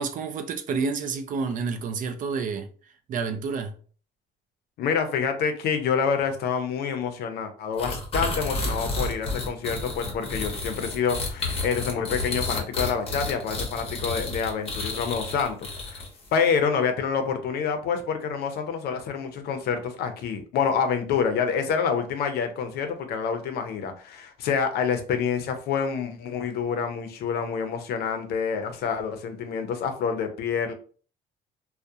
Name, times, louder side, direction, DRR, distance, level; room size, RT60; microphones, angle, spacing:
voice 1, 0.0-2.7 3.1-3.7, right 5 dB, 50° right, 0.4 m, -29 dB
voice 2, 4.8-16.0 16.3-30.7, left 6 dB, 70° left, 0.5 m, -27 dB
sound 1, 7.8-16.3, left 3 dB, 35° left, 0.8 m, -31 dB
2.3 x 2.1 x 2.6 m
cardioid pair, 110°, 17 cm